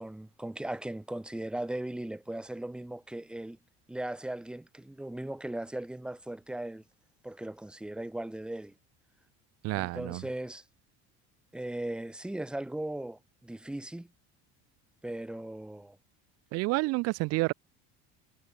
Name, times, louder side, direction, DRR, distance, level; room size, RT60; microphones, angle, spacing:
voice 1, 0.0-3.6 3.9-6.8 7.2-8.7 9.7-10.6 11.5-14.1 15.0-16.0, right 1 dB, 5° right, 1.5 m, -38 dB
voice 2, 9.6-10.2 16.5-17.5, right 23 dB, 55° right, 0.6 m, -29 dB
cardioid pair, 170°, 29 cm